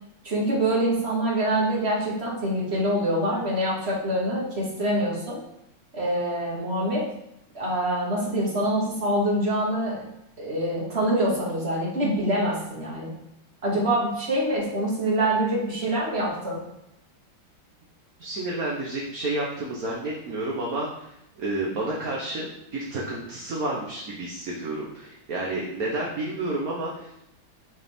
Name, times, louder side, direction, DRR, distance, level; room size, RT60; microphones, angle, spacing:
voice 1, 0.2-5.4 5.9-7.1 7.5-10.0 10.4-13.1 13.6-16.6, right 1 dB, 30° right, -5 dB, 2.2 m, -25 dB
voice 2, 18.2-22.5 22.7-27.2, right 2 dB, 50° right, -3 dB, 1.5 m, -30 dB
9.5 x 4.6 x 3.6 m, 0.83 s
omnidirectional pair, 2.1 m